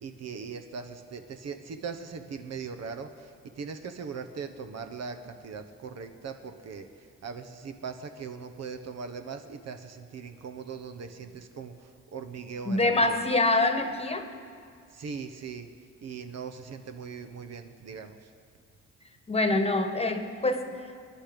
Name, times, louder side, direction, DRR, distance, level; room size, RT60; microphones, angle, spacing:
voice 1, 0.0-13.2 14.9-15.7 16.0-18.3, right 5 dB, 60° right, 7 dB, 1.1 m, -40 dB
voice 2, 12.6-14.3 19.3-21.0, left 2 dB, 20° left, 7 dB, 1.4 m, -25 dB
22.5 x 10.5 x 5.2 m, 2.2 s
cardioid pair, 90°, 30 cm